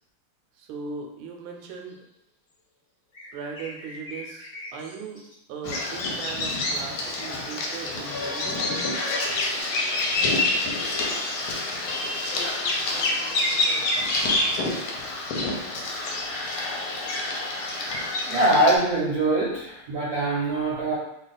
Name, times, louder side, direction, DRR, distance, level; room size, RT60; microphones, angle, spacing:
voice 1, 0.6-2.0 3.3-5.2 5.5-8.7, right 5 dB, 80° right, 2 dB, 1.4 m, -38 dB
sound 1, 1.6-2.0 3.1-5.3 7.5-9.6, left 1 dB, 50° left, 1.2 m, -42 dB
Bird vocalization bird call bird song, 5.6-18.8, left 2 dB, 75° left, 1.4 m, -27 dB
voice 2, 18.2-21.0, right 1 dB, 60° right, -6 dB, 1.0 m, -23 dB
3.4 x 2.3 x 3.8 m, 0.82 s
omnidirectional pair, 2.4 m